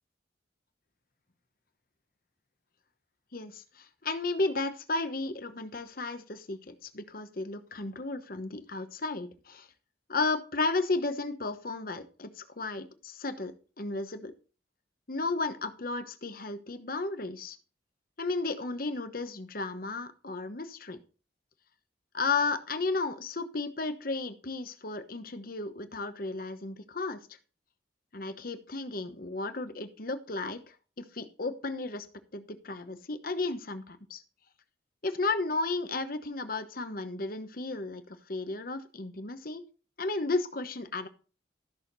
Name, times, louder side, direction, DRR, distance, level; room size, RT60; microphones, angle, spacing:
voice 1, 3.3-9.7 10.1-14.3 15.1-17.6 18.2-21.0 22.1-27.2 28.1-32.1 32.3-34.2 35.0-39.6 40.0-41.1, left 3 dB, 50° left, 10 dB, 1.1 m, -34 dB
14.0 x 6.5 x 4.1 m, 0.37 s
head